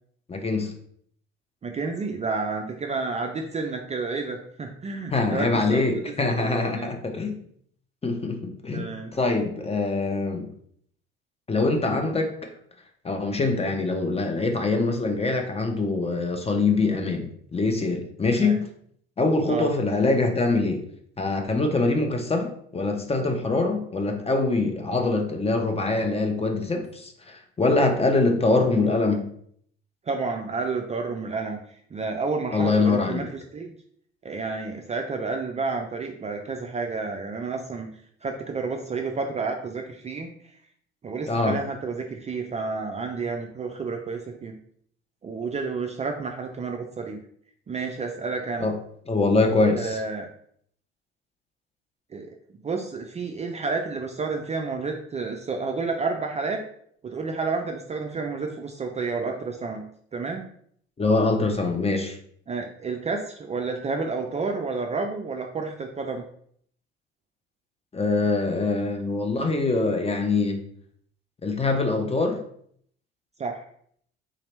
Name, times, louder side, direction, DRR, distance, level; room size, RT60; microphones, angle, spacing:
voice 1, 0.3-0.7 5.1-7.4 8.0-10.5 11.5-12.5 13.0-18.7 19.2-20.8 21.2-29.3 32.5-33.3 41.3-41.6 48.6-48.8 49.1-50.0 61.0-62.2 67.9-70.6 71.4-72.4, left 3 dB, 20° left, 4 dB, 0.8 m, -24 dB
voice 2, 1.6-5.8 6.3-6.9 8.7-9.1 18.4-18.6 19.5-19.7 30.1-31.6 31.9-33.7 34.2-37.9 38.2-40.3 41.0-44.6 45.2-47.2 47.7-48.7 49.7-50.3 52.1-52.3 52.6-56.6 57.0-59.8 60.1-60.5 62.5-66.2 73.4-73.6, right 4 dB, 25° right, 3 dB, 0.4 m, -30 dB
3.9 x 2.9 x 3.2 m, 0.64 s
hypercardioid pair, 55°, 30 cm